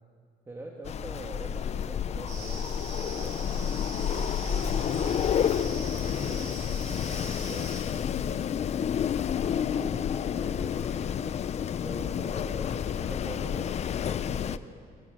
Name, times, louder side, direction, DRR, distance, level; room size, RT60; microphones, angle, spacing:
voice 1, 0.5-3.8 4.4-6.6 7.0-8.3 9.4-10.0 10.2-11.2 11.5-14.6, right 2 dB, 15° right, 0 dB, 1.8 m, -44 dB
Wind, 0.8-14.6, left 8 dB, 40° left, 0.6 m, -30 dB
sound 1, 2.3-7.8, right 2 dB, 45° right, 6.9 m, -43 dB
Bowed string instrument, 7.5-11.6, right 3 dB, 85° right, 2.1 m, -57 dB
24.5 x 17.5 x 7.6 m, 2.1 s
cardioid pair, 145°, 17 cm